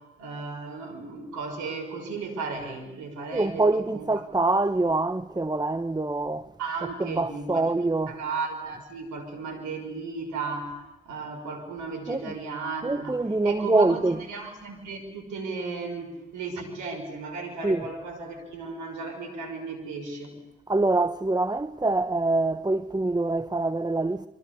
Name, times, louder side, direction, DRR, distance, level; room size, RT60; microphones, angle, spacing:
voice 1, 0.0-3.6 3.9-4.1 6.6-7.7 8.1-14.0 14.3-20.3, right 4 dB, 80° right, 6.2 m, -35 dB
voice 2, 3.3-6.5 7.0-8.2 12.1-12.3 12.8-14.2 17.6-17.8 20.7-24.3, right 2 dB, 15° right, 1.2 m, -25 dB
29.5 x 25.0 x 7.1 m
hypercardioid pair, 45°, 30 cm